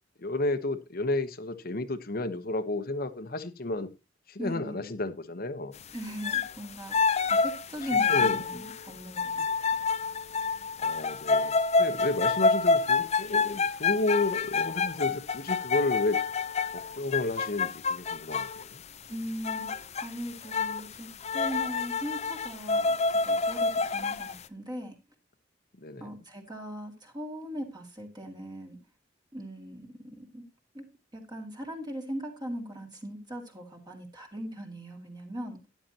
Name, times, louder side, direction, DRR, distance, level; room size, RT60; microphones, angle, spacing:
voice 1, 0.2-3.9 4.3-5.7 8.1-8.4 10.8-16.2 16.7-18.8 25.8-26.1, left 2 dB, 50° left, 1.0 m, -32 dB
voice 2, 4.4-4.9 5.9-7.0 7.3-9.5 9.7-9.9 19.1-21.1 21.3-25.0 26.0-28.8 29.3-30.4 30.7-30.8 31.1-35.7, equal, 25° right, 2.3 m, -39 dB
sound 1, 6.2-6.5 6.9-18.6 19.4-20.1 20.4-20.9 21.2-24.3, left 4 dB, 35° left, 0.6 m, -27 dB
13.0 x 10.5 x 2.9 m
head